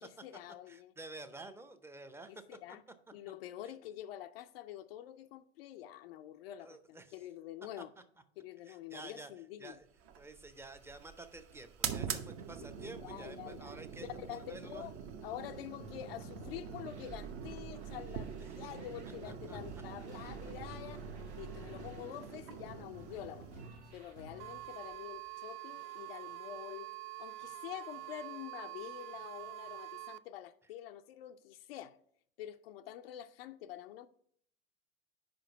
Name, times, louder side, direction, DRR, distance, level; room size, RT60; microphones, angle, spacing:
voice 1, 0.0-0.9 2.3-2.8 3.1-7.9 8.4-9.8 12.8-13.7 14.1-14.9 15.2-21.0 21.3-23.7 23.9-26.9 27.2-32.0 32.4-34.1, left 12 dB, 65° left, 0.5 m, -47 dB
voice 2, 0.7-2.3 6.6-7.2 7.8-8.0 8.6-9.3 9.6-9.9 10.2-14.9 19.2-19.8, right 2 dB, 10° right, 0.6 m, -50 dB
sound 1, 10.0-25.3, right 7 dB, 45° right, 0.8 m, -45 dB
sound 2, 15.8-25.0 25.3-26.1, right 3 dB, 85° right, 1.2 m, -51 dB
sound 3, 24.4-30.2, right 16 dB, 65° right, 0.5 m, -46 dB
5.1 x 5.1 x 5.8 m
hypercardioid pair, 90°, 33 cm